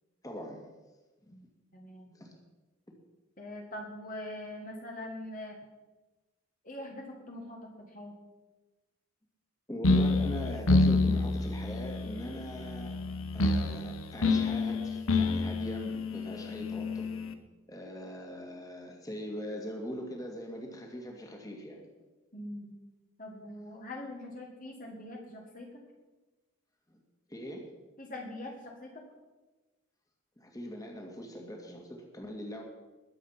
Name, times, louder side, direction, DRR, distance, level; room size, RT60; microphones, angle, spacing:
voice 1, 0.2-0.7 1.2-1.3 2.1-2.3 9.7-12.9 13.3-17.1 17.7-21.8 23.5-23.6 26.9-27.0 27.3-27.6 30.4-32.6, equal, 15° left, 0 dB, 2.2 m, -41 dB
voice 2, 1.7-2.1 3.4-5.6 6.6-8.2 22.3-22.7 23.2-25.7 28.0-28.9, left 1 dB, 40° left, 0 dB, 1.9 m, -43 dB
sound 1, 9.8-17.3, left 3 dB, 80° left, 1.1 m, -28 dB
21.0 x 7.8 x 5.8 m, 1.2 s
head